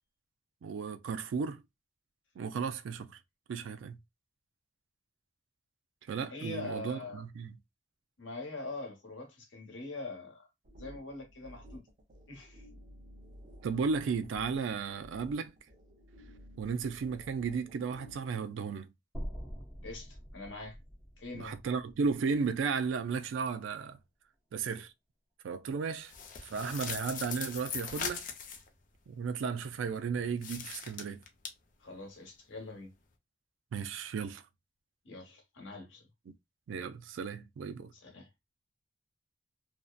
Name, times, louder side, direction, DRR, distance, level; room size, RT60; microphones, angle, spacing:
voice 1, 0.6-1.6 2.4-3.2 3.5-4.0 6.1-7.5 13.6-15.5 16.6-18.9 21.3-24.0 24.5-24.9 25.4-26.1 26.5-28.2 29.1-31.2 33.7-34.4 36.3-36.4 36.7-37.9, right 5 dB, 85° right, 0.3 m, -34 dB
voice 2, 6.2-7.2 8.2-10.5 10.8-11.8 12.3-12.7 19.8-20.8 21.2-21.6 31.8-32.9 35.0-36.1 37.9-38.3, left 2 dB, 75° left, 1.0 m, -43 dB
sound 1, 10.6-18.3, equal, 45° right, 0.6 m, -54 dB
sound 2, 19.1-23.3, equal, 10° left, 0.8 m, -45 dB
sound 3, 26.0-28.7 30.4-31.5, left 6 dB, 45° left, 0.5 m, -40 dB
2.6 x 2.1 x 2.2 m
head